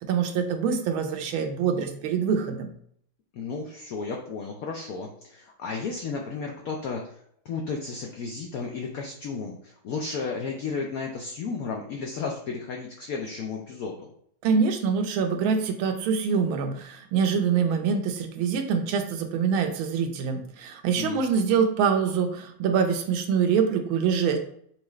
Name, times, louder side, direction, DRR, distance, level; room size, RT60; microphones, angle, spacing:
voice 1, 0.0-2.7 14.4-24.4, right 6 dB, 85° right, 5 dB, 1.5 m, -25 dB
voice 2, 3.3-7.2 7.4-14.1 20.9-21.2, left 4 dB, 80° left, 1 dB, 0.7 m, -33 dB
5.8 x 2.4 x 3.1 m, 0.64 s
omnidirectional pair, 2.2 m